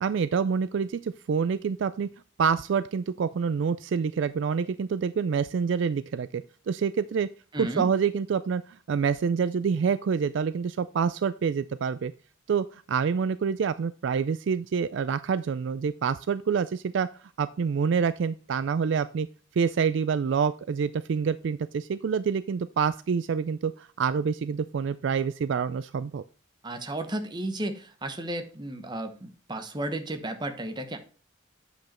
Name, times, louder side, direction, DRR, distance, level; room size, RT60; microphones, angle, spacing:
voice 1, 0.0-2.1 2.4-7.3 7.6-12.1 12.5-17.1 17.4-19.3 19.6-26.2, right 6 dB, 60° right, 15 dB, 0.3 m, -27 dB
voice 2, 7.5-7.9 26.6-31.0, right 1 dB, 20° right, 7 dB, 0.9 m, -33 dB
8.3 x 5.2 x 4.2 m, 0.37 s
head